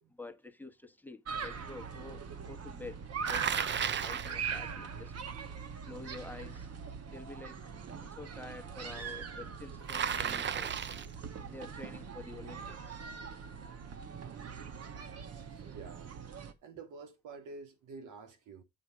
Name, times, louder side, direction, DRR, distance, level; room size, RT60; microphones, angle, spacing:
voice 1, 0.1-3.7 4.0-5.1 5.9-6.7 7.1-7.6 8.0-10.7 11.4-13.0, left 3 dB, 5° left, 1.1 m, -48 dB
sound 1, 1.2-16.5, right 6 dB, 55° right, 1.4 m, -42 dB
Bicycle, 3.2-4.4 9.9-11.1, right 8 dB, 40° right, 0.6 m, -33 dB
voice 2, 15.2-18.6, right 4 dB, 85° right, 2.1 m, -50 dB
8.6 x 5.1 x 4.9 m
cardioid pair, 90°, 30 cm